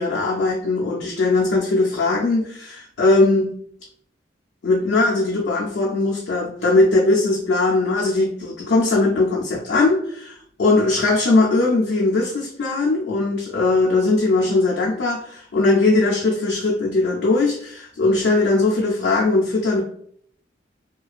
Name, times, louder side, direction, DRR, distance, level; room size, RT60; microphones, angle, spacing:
voice 1, 0.0-3.6 4.6-19.8, left 2 dB, 70° left, -3 dB, 0.4 m, -19 dB
2.4 x 2.2 x 2.3 m, 0.65 s
head